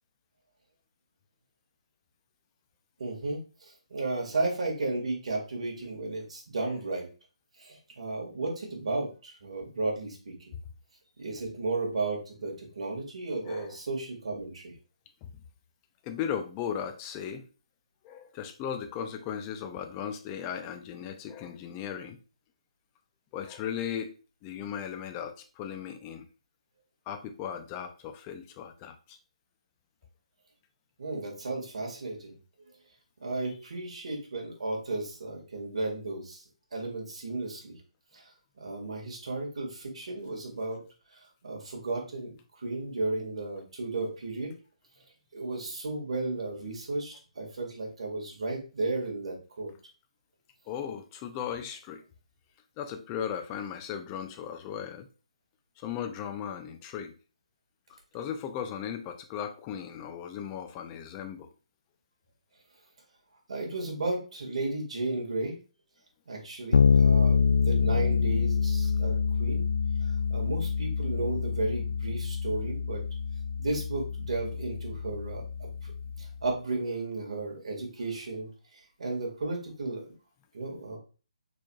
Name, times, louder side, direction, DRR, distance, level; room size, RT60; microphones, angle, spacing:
voice 1, 3.0-3.4 3.9-7.1 7.6-10.3 11.2-14.7 31.0-32.3 33.2-36.4 36.7-37.7 38.1-38.2 38.6-40.8 41.4-42.3 42.6-44.5 45.3-49.7 63.5-65.5 66.3-69.6 70.3-73.0 73.6-75.9 76.2-78.5 79.0-80.1 80.5-81.0, right 2 dB, 65° right, -1 dB, 2.1 m, -34 dB
voice 2, 13.4-13.8 15.2-15.3 16.0-17.5 18.0-22.2 23.3-24.1 24.4-26.3 27.1-29.2 50.7-52.0 52.8-55.1 55.8-57.1 57.9-61.5, left 8 dB, 20° left, 7 dB, 0.5 m, -37 dB
Bass guitar, 66.7-76.4, left 5 dB, 75° left, 0.4 m, -26 dB
4.6 x 4.3 x 2.4 m, 0.35 s
hypercardioid pair, 155°, 4 cm